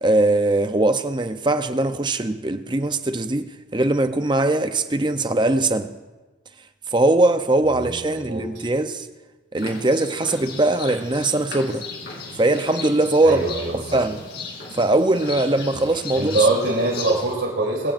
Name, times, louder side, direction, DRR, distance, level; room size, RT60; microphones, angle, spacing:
voice 1, 0.0-5.9 6.9-9.1 9.5-11.8 12.3-13.4 13.7-14.2 14.7-16.4, right 2 dB, 25° right, 0.7 m, -21 dB
voice 2, 7.6-8.5 13.2-14.0 16.1-17.9, right 2 dB, 75° right, 3.3 m, -23 dB
sound 1, 9.6-17.3, left 4 dB, 60° left, 2.9 m, -36 dB
22.5 x 16.0 x 2.6 m
head